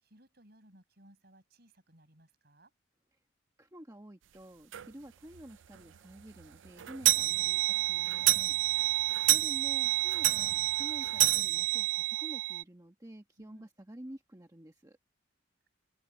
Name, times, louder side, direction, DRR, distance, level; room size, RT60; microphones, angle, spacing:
voice 1, 0.0-2.7 7.3-7.5 9.2-9.6 13.4-13.6, right 1 dB, 55° right, 6.3 m, -61 dB
voice 2, 3.6-7.6 7.9-8.6 8.9-9.0 9.3-15.0, right 1 dB, 15° right, 1.1 m, -49 dB
sound 1, 4.7-4.9 5.3-5.4 5.8-5.9 6.2-12.6, right 17 dB, 70° right, 0.4 m, -28 dB
open air
head